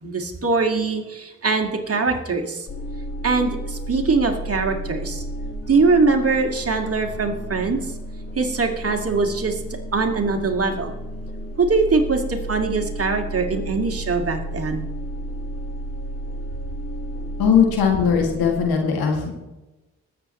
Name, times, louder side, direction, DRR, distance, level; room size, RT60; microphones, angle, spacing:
voice 1, 0.0-2.7 3.2-5.2 5.7-7.8 8.4-9.6 9.9-10.9 11.6-14.9, right 4 dB, 40° right, 4 dB, 2.2 m, -22 dB
sound 1, 2.7-18.7, right 1 dB, 35° left, 1.6 m, -32 dB
voice 2, 17.4-19.3, left 6 dB, 80° left, 2 dB, 2.2 m, -19 dB
21.0 x 7.7 x 3.1 m, 1.1 s
hypercardioid pair, 45°, 36 cm